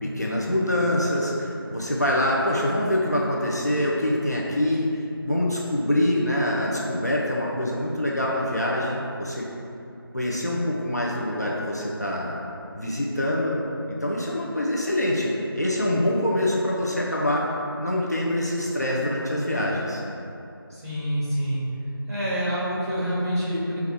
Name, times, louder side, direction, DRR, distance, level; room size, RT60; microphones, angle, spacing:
voice 1, 0.0-9.5 10.1-12.4 12.7-13.6 13.9-17.5 17.8-20.0, left 1 dB, 45° left, -4 dB, 0.4 m, -25 dB
voice 2, 20.7-21.6 22.1-23.8, equal, 40° right, -8 dB, 1.2 m, -27 dB
4.1 x 2.3 x 3.5 m, 2.8 s
figure-of-eight pair, 180°, 13 cm